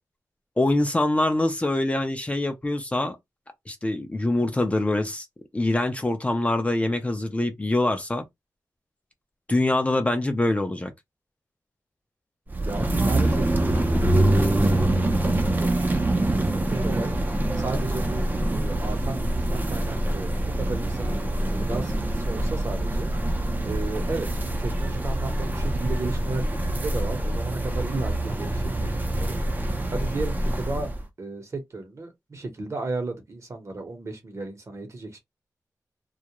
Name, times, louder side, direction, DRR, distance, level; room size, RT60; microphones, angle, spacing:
voice 1, 0.6-3.2 3.7-5.3 5.5-8.2 9.5-10.9, left 2 dB, 20° left, 0.5 m, -24 dB
sound 1, 12.5-31.0, right 1 dB, 30° right, 0.5 m, -25 dB
voice 2, 12.6-14.1 14.4-16.1 16.4-17.1 17.6-21.2 21.5-23.1 23.6-29.4 29.9-30.9 31.2-35.2, right 3 dB, 50° right, 1.0 m, -34 dB
2.3 x 2.1 x 2.9 m
wide cardioid pair, 100°, 7 cm